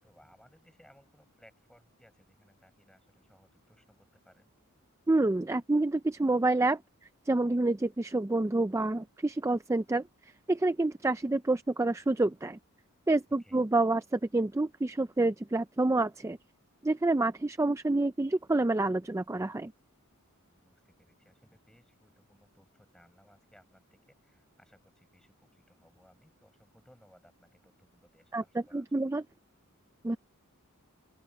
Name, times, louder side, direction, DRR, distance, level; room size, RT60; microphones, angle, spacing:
voice 1, 0.0-4.5 13.4-13.6 20.5-29.2, equal, 5° left, 7.2 m, -62 dB
voice 2, 5.1-6.8 7.3-10.0 10.5-12.6 13.1-16.4 16.8-19.7 28.3-29.2 30.0-30.2, right 2 dB, 15° right, 0.4 m, -28 dB
open air
head